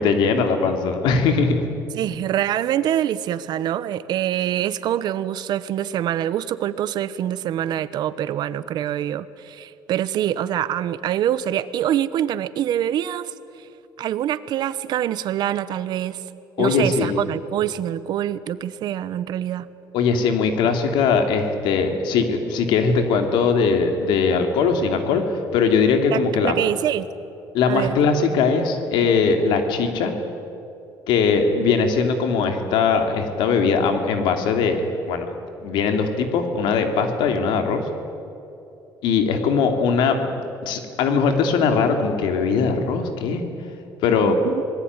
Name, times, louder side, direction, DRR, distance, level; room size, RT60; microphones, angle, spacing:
voice 1, 0.0-1.6 16.6-17.2 19.9-26.6 27.5-30.1 31.1-35.3 35.6-37.9 39.0-40.3 40.6-43.4 44.0-44.4, left 5 dB, 90° left, 6 dB, 3.1 m, -20 dB
voice 2, 1.9-13.7 14.0-16.2 16.6-19.7 26.1-27.1 27.7-28.0 44.2-44.6, right 11 dB, 65° right, 15 dB, 1.0 m, -25 dB
27.0 x 20.0 x 9.8 m, 2.8 s
cardioid pair, 130°, 8 cm